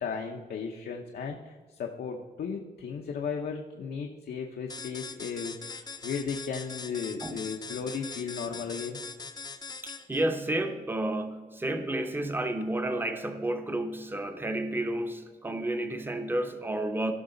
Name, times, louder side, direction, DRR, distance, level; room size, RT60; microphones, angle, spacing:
voice 1, 0.0-9.0, left 6 dB, 80° left, 2 dB, 0.8 m, -35 dB
sound 1, 4.7-10.2, left 4 dB, 25° left, 0.6 m, -41 dB
voice 2, 9.8-17.1, right 1 dB, 15° right, 7 dB, 0.8 m, -31 dB
16.0 x 6.0 x 3.9 m, 1.4 s
wide cardioid pair, 115°, 16 cm